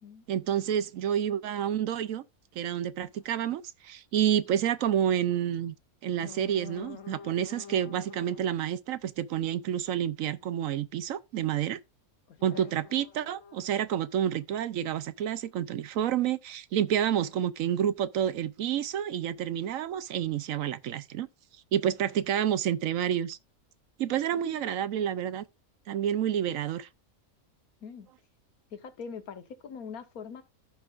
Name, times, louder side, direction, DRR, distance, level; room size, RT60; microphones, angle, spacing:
voice 1, 0.3-2.2 2.6-5.7 6.0-11.8 12.4-21.3 21.7-23.4 24.0-25.4 25.9-26.9, right 10 dB, 70° right, 1.0 m, -29 dB
sound 1, 3.1-3.3 4.3-4.5 6.1-8.5 12.4-14.4, left 7 dB, 65° left, 1.3 m, -48 dB
voice 2, 12.3-12.7 24.3-24.4 27.8-28.1 28.7-30.4, left 6 dB, 80° left, 1.5 m, -42 dB
14.5 x 5.7 x 2.5 m
omnidirectional pair, 1.5 m